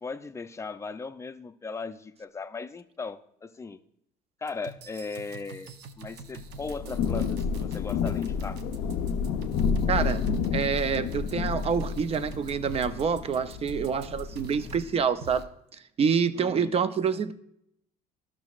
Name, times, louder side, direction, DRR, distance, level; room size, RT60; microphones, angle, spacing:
voice 1, 0.0-3.8 4.4-8.6 16.4-16.7, left 4 dB, 15° left, 10 dB, 0.4 m, -38 dB
sound 1, 4.5-14.9 15.2-15.4, right 4 dB, 80° right, 0.7 m, -45 dB
Thunder / Rain, 6.4-15.0, left 6 dB, 90° left, 0.4 m, -30 dB
voice 2, 9.9-10.3 10.5-15.5 16.0-17.3, right 6 dB, 35° right, 12 dB, 0.5 m, -27 dB
12.5 x 6.0 x 2.4 m, 0.74 s
cardioid pair, 110°, 17 cm